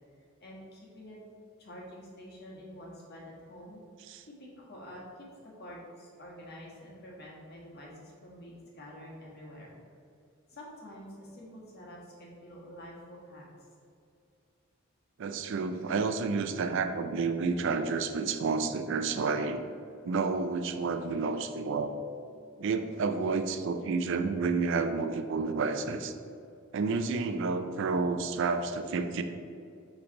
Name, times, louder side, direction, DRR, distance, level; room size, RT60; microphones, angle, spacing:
voice 1, 0.4-1.2 1.6-3.8 4.3-9.7 10.5-13.6, equal, 50° left, -4 dB, 1.5 m, -48 dB
voice 2, 15.2-19.6 20.0-21.9 22.6-26.1 26.7-29.2, right 4 dB, 60° right, 9 dB, 0.4 m, -30 dB
5.8 x 3.3 x 5.2 m, 2.4 s
head